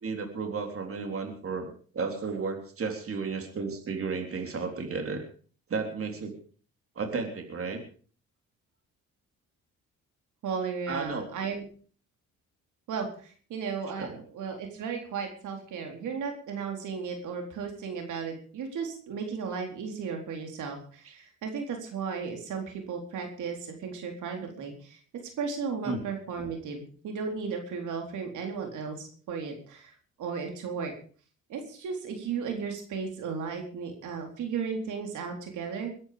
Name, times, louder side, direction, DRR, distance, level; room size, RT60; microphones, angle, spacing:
voice 1, 0.0-5.2 5.7-6.3 7.0-7.8 10.9-11.3 14.0-14.2 21.1-21.2 25.8-26.0, right 4 dB, 45° right, 4 dB, 3.7 m, -33 dB
voice 2, 10.4-11.6 12.9-13.1 13.5-25.0 25.4-29.9 30.2-30.9 31.5-35.9, right 5 dB, 80° right, 3 dB, 4.1 m, -35 dB
22.0 x 10.5 x 5.2 m, 0.43 s
cardioid pair, 90°, 30 cm